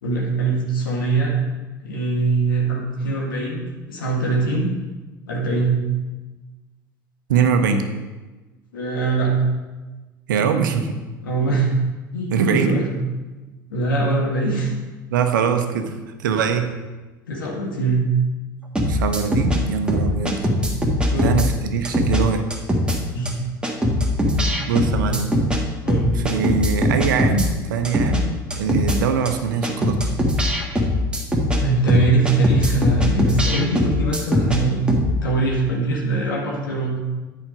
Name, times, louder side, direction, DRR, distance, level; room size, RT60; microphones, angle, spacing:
voice 1, 0.0-1.4 1.8-3.6 3.9-4.7 5.3-5.8 8.7-9.3 11.2-11.7 12.1-12.9 13.7-14.7 17.3-18.1 21.1-21.3 23.1-23.3 24.3-24.5 25.1-25.2 25.8-26.2 31.5-34.8 35.2-37.0, right 3 dB, 75° left, -2 dB, 1.7 m, -22 dB
voice 2, 7.3-7.9 10.3-11.0 12.3-12.8 15.1-16.7 18.9-20.4 21.2-22.4 24.7-25.3 26.1-28.3 28.5-30.1, right 6 dB, 70° right, 7 dB, 0.8 m, -22 dB
sound 1, 18.8-19.6 19.9-21.5 21.8-22.2 22.5-23.0 23.3-23.4 23.6-25.6 25.9-27.5 27.8-28.2 28.5-29.0 29.3-29.4 29.6-31.6 31.9-34.6 34.9-35.1, left 1 dB, 10° right, 1.6 m, -20 dB
9.8 x 5.1 x 5.1 m, 1.2 s
figure-of-eight pair, 70°, 11 cm